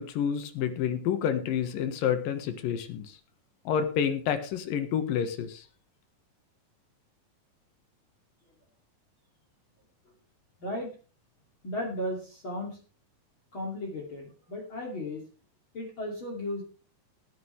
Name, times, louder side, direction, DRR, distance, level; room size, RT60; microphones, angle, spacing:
voice 1, 0.0-3.2 3.7-5.6, left 8 dB, 75° left, 9 dB, 3.1 m, -29 dB
voice 2, 10.6-10.9 11.6-12.8 13.5-15.2 15.7-16.6, left 1 dB, 35° left, 0 dB, 3.2 m, -35 dB
18.0 x 10.0 x 3.4 m, 0.37 s
omnidirectional pair, 4.1 m